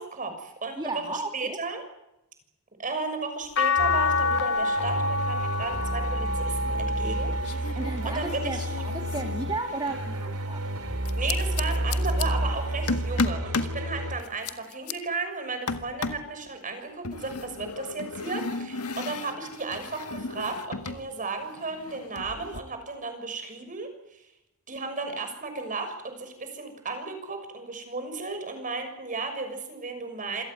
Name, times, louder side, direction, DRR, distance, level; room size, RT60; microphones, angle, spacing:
voice 1, 0.0-1.8 2.8-8.7 11.2-24.2 24.7-30.4, right 3 dB, 35° right, 7 dB, 6.4 m, -34 dB
voice 2, 0.8-1.6 7.7-10.6, right 2 dB, 20° right, 4 dB, 2.1 m, -34 dB
sound 1, 3.6-9.9 10.4-11.8 13.2-13.3, left 3 dB, 55° left, 1.3 m, -29 dB
sound 2, 3.8-14.1, right 1 dB, 85° right, 3.7 m, -31 dB
sound 3, 6.6-7.2 7.4-10.0 11.0-12.3 12.9-13.8 14.2-14.9 15.7-16.3 17.0-21.0 21.3-22.6, left 4 dB, 80° left, 1.7 m, -34 dB
27.5 x 17.0 x 9.5 m, 0.88 s
head